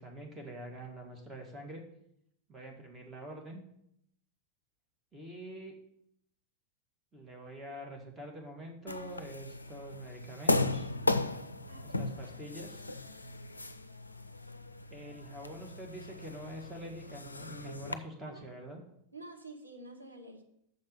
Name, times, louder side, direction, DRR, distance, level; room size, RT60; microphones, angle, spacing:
voice 1, 0.0-1.8 2.5-3.6 5.1-5.7 7.1-10.9 11.8-12.8 14.9-18.8, right 1 dB, 15° right, 1 dB, 1.9 m, -45 dB
sound 1, 8.9-17.9, left 2 dB, 80° left, 0.4 m, -36 dB
voice 2, 11.7-12.0 18.2-18.6 19.1-20.4, right 2 dB, 85° right, 2 dB, 1.2 m, -49 dB
6.7 x 5.4 x 6.8 m, 0.73 s
figure-of-eight pair, 90°, 0 cm